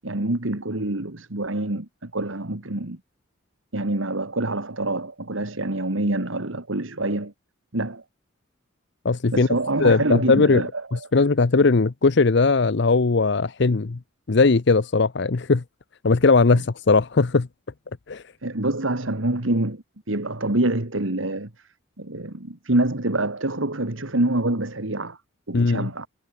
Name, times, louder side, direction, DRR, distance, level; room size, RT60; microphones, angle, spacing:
voice 1, 0.0-3.0 3.7-7.3 7.7-8.0 9.3-10.9 16.5-16.6 18.4-21.5 22.0-25.2 25.5-26.1, right 2 dB, 80° right, 2.4 m, -26 dB
voice 2, 9.0-9.5 9.8-10.6 11.1-14.0 14.3-15.6 16.0-17.5 18.1-18.2 25.5-25.9, left 3 dB, 60° left, 0.7 m, -19 dB
head